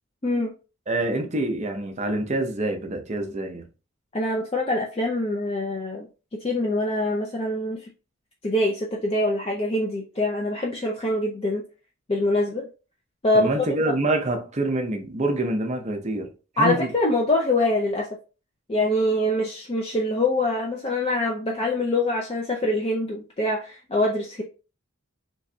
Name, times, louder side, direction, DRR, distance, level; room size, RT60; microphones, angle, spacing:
voice 1, 0.2-0.5 4.1-7.9 8.4-11.6 12.1-12.7 13.2-13.5 13.9-14.0 16.6-18.1 18.7-24.4, left 1 dB, 25° left, 0.4 m, -24 dB
voice 2, 0.9-3.7 13.3-16.9, right 2 dB, 30° right, 0.6 m, -26 dB
3.4 x 3.0 x 2.7 m
head